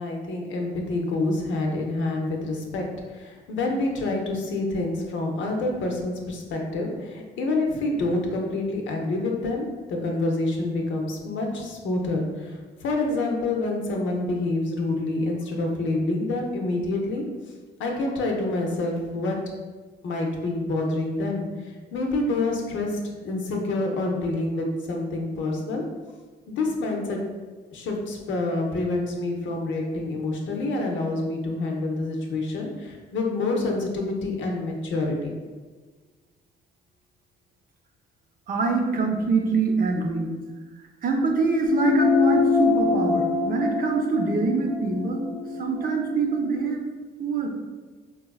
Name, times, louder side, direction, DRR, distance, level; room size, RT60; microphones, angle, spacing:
voice 1, 0.0-17.2 17.8-19.4 20.0-25.8 26.5-27.2 27.7-35.3, left 2 dB, 70° left, 1 dB, 0.6 m, -27 dB
voice 2, 38.5-40.3 41.0-45.3 45.6-46.8 47.2-47.5, right 4 dB, 45° right, 2 dB, 0.6 m, -24 dB
sound 1, 41.7-46.5, left 4 dB, 20° left, 0.6 m, -24 dB
4.1 x 2.3 x 2.3 m, 1.4 s
cardioid pair, 90°, 20 cm